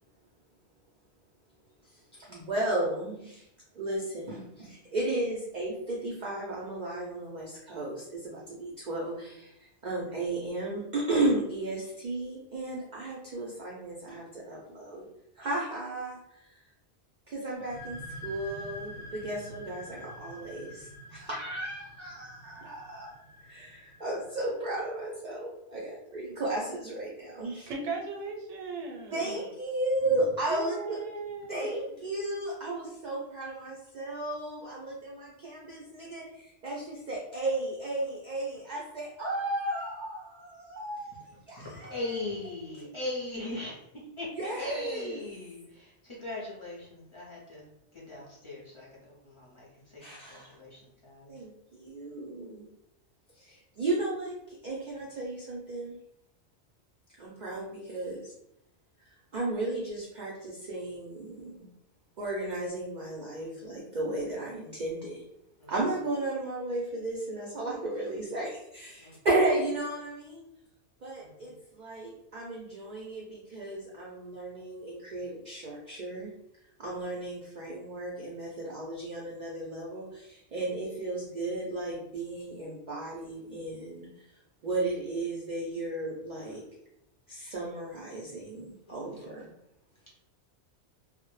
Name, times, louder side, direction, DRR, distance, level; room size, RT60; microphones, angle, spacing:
voice 1, 1.9-3.5 3.7-15.1 15.4-16.6 17.3-23.1 23.4-27.7 29.1-31.0 31.5-42.0 44.4-45.2 50.0-50.5 51.3-52.7 53.4-56.0 57.2-58.3 59.0-61.7 62.2-65.2 65.7-70.5 71.0-76.3 76.8-84.1 84.6-86.6 87.3-89.5, right 2 dB, 55° right, -3 dB, 0.5 m, -34 dB
sound 1, 17.6-25.0, equal, 65° left, 0.7 m, -46 dB
voice 2, 27.7-29.4 30.5-31.7, right 4 dB, 80° right, 0 dB, 0.9 m, -37 dB
voice 3, 41.3-43.8 44.2-47.7 47.9-50.0 50.3-51.3 63.3-63.7 65.6-65.7 69.0-69.2 71.2-71.5 88.9-89.3, left 2 dB, 40° left, -5 dB, 0.4 m, -40 dB
2.1 x 2.0 x 3.0 m, 0.81 s
omnidirectional pair, 1.2 m